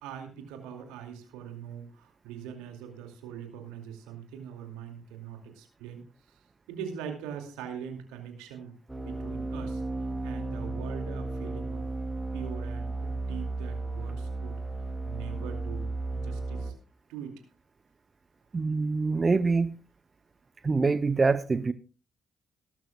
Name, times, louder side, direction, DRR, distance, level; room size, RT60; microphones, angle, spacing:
voice 1, 0.0-6.0 6.3-8.7 9.0-9.8 10.2-11.9 12.3-14.6 15.0-16.7 17.1-17.4, right 8 dB, 80° right, 4 dB, 2.4 m, -42 dB
sound 1, 8.9-16.7, right 2 dB, 10° right, 2.5 m, -34 dB
voice 2, 18.5-19.8 20.6-21.7, right 4 dB, 35° right, 13 dB, 0.7 m, -25 dB
19.0 x 12.0 x 2.3 m, 0.35 s
hypercardioid pair, 50°, 0 cm